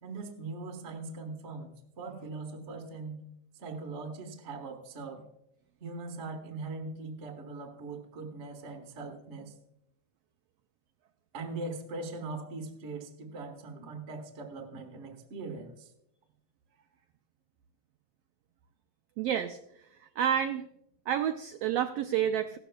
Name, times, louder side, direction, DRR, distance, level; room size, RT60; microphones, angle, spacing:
voice 1, 0.0-3.2 3.6-5.3 5.8-9.5 11.3-15.9, right 3 dB, 50° right, 3 dB, 0.8 m, -41 dB
voice 2, 19.2-20.7 21.1-22.6, right 9 dB, 85° right, 7 dB, 1.4 m, -30 dB
16.0 x 13.0 x 2.2 m, 0.78 s
omnidirectional pair, 3.3 m